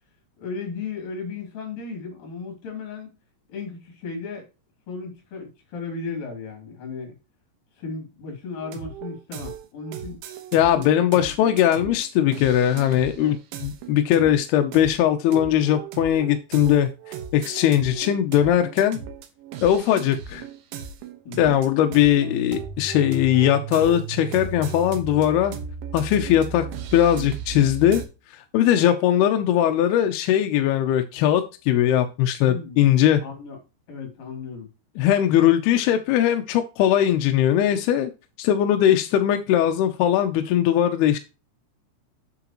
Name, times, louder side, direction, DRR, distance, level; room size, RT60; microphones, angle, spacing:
voice 1, 0.4-3.1 3.5-4.5 4.9-7.2 7.8-10.2 10.7-10.8 21.3-21.5 32.5-32.9 33.2-33.6 33.9-34.7, left 4 dB, 50° left, 3 dB, 4.4 m, -35 dB
sound 1, 8.6-28.1, right 6 dB, 85° right, 3.7 m, -36 dB
voice 2, 10.5-16.9 17.3-19.0 19.6-20.4 21.4-25.5 25.9-26.7 26.9-28.0 28.5-33.2 35.0-38.1 38.4-41.2, left 11 dB, 80° left, 7 dB, 2.3 m, -20 dB
8.3 x 7.8 x 3.0 m, 0.29 s
omnidirectional pair, 5.3 m